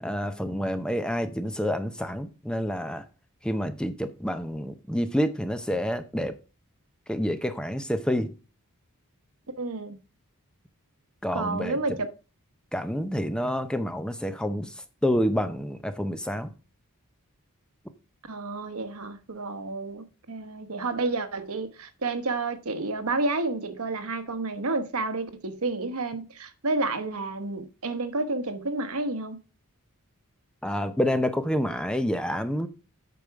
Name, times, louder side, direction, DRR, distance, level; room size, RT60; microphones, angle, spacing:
voice 1, 0.0-3.1 3.4-6.4 7.1-8.3 11.2-12.0 12.7-14.7 15.0-16.5 30.6-32.7, equal, 5° left, 0.6 m, -28 dB
voice 2, 9.6-10.0 11.3-12.1 18.3-29.4, right 3 dB, 75° right, 1.1 m, -30 dB
8.4 x 5.3 x 4.6 m
head